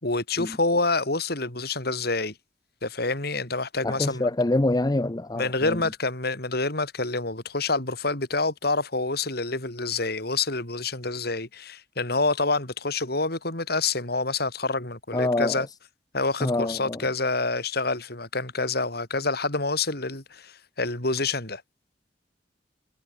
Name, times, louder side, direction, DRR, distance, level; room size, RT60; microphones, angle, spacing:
voice 1, 0.0-2.3 2.8-4.3 5.4-15.7 16.1-21.6, left 3 dB, 60° left, 5.3 m, -27 dB
voice 2, 3.8-5.8 15.1-15.7 16.4-17.0, left 2 dB, 20° left, 0.7 m, -26 dB
head